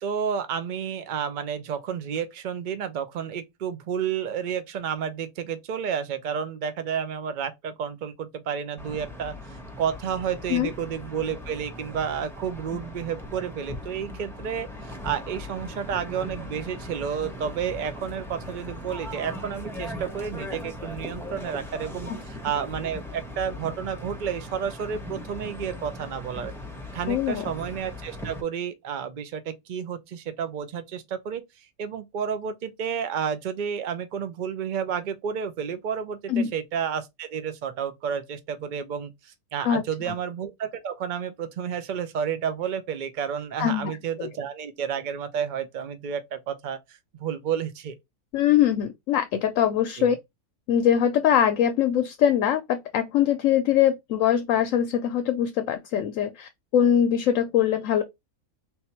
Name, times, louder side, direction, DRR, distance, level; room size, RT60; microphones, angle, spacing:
voice 1, 0.0-9.4 9.8-26.5 26.9-31.4 31.8-48.0 50.0-50.1, right 7 dB, 55° right, 0.5 m, -31 dB
sound 1, 8.8-28.4, left 1 dB, ahead, 0.7 m, -39 dB
voice 2, 27.1-27.4 36.3-36.5 39.6-39.8 43.6-43.9 44.2-44.3 48.3-50.2 50.7-58.0, left 9 dB, 70° left, 0.9 m, -22 dB
3.6 x 2.8 x 4.2 m
omnidirectional pair, 1.6 m